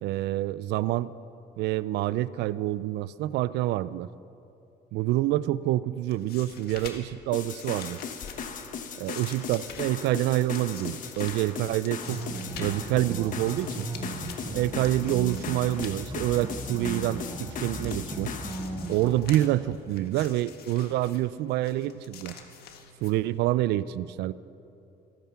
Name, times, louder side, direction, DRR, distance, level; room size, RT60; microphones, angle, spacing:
voice 1, 0.0-1.1 1.6-4.1 4.9-8.0 9.0-12.2 12.6-13.9 14.5-18.3 18.9-22.3 23.0-24.3, right 15 dB, 80° right, 18 dB, 0.4 m, -27 dB
sound 1, 5.9-23.5, left 6 dB, 65° left, 1.6 m, -47 dB
sound 2, 7.3-18.6, left 6 dB, 50° left, 1.4 m, -38 dB
sound 3, 12.0-19.2, right 2 dB, 25° right, 4.8 m, -37 dB
25.0 x 9.3 x 5.8 m, 2.7 s
cardioid pair, 110°, 17 cm